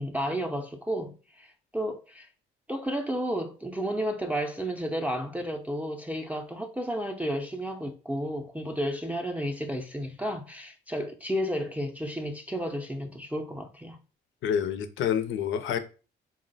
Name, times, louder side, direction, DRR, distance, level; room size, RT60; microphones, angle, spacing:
voice 1, 0.0-2.3 2.7-14.0, equal, 5° right, 0.4 m, -32 dB
voice 2, 14.4-15.8, left 8 dB, 80° left, 0.5 m, -28 dB
3.8 x 2.1 x 3.8 m
cardioid pair, 90°, 20 cm